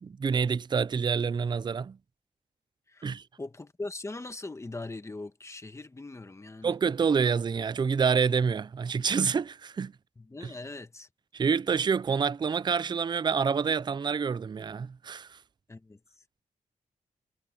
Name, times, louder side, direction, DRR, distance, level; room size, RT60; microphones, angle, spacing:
voice 1, 0.0-2.0 3.0-3.2 6.6-9.9 11.3-15.4, right 6 dB, 30° right, 0.4 m, -27 dB
voice 2, 2.9-6.8 10.2-11.1 15.7-16.0, left 2 dB, 20° left, 1.3 m, -41 dB
wide cardioid pair, 120°, 14 cm